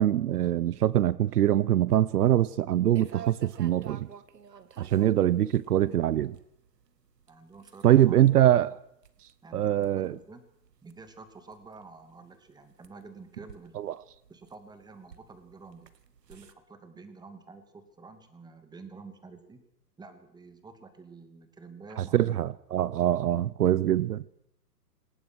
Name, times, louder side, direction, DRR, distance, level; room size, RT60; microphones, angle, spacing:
voice 1, 0.0-4.1 4.8-6.4 7.8-8.8 9.5-10.1 13.8-13.9 22.1-24.2, right 12 dB, 70° right, 21 dB, 0.9 m, -23 dB
sound 1, 3.0-16.5, right 7 dB, 85° right, 2.2 m, -51 dB
voice 2, 7.3-8.4 9.4-10.5 10.8-13.8 14.3-15.9 16.3-19.6 20.0-22.3, right 4 dB, 10° right, 9 dB, 2.7 m, -49 dB
27.0 x 19.0 x 6.4 m, 0.77 s
hypercardioid pair, 135°, 48 cm